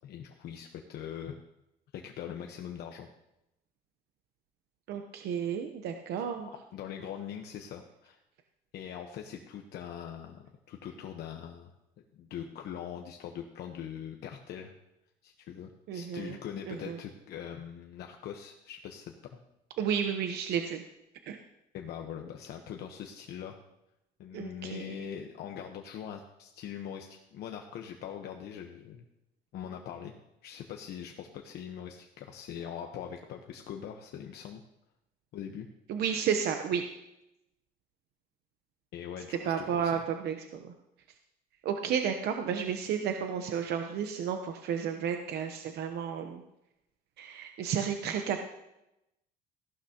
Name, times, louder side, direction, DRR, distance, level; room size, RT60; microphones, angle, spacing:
voice 1, 0.0-1.4 1.9-3.1 6.2-6.3 6.7-8.2 8.7-11.7 12.2-14.7 15.2-19.4 21.7-23.6 24.2-29.0 29.5-30.1 30.4-34.6 35.3-35.7 38.9-40.0, left 9 dB, 75° left, 3 dB, 1.1 m, -42 dB
voice 2, 4.9-6.5 15.9-16.4 16.7-17.0 19.8-20.8 21.3-21.4 24.3-25.0 35.9-36.8 39.3-40.7 41.6-46.4 47.2-48.4, right 7 dB, 75° right, 5 dB, 0.9 m, -32 dB
15.5 x 11.5 x 2.9 m, 0.89 s
cardioid pair, 110°, 17 cm